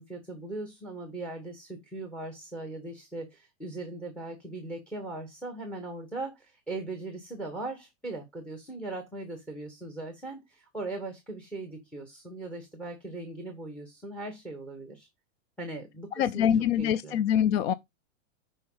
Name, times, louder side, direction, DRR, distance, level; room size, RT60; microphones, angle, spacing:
voice 1, 0.0-15.1 15.6-16.5 16.8-17.2, right 2 dB, 5° left, 1.5 m, -39 dB
voice 2, 16.2-17.7, left 9 dB, 55° left, 0.6 m, -24 dB
10.5 x 5.2 x 3.9 m
supercardioid pair, 155°, 37 cm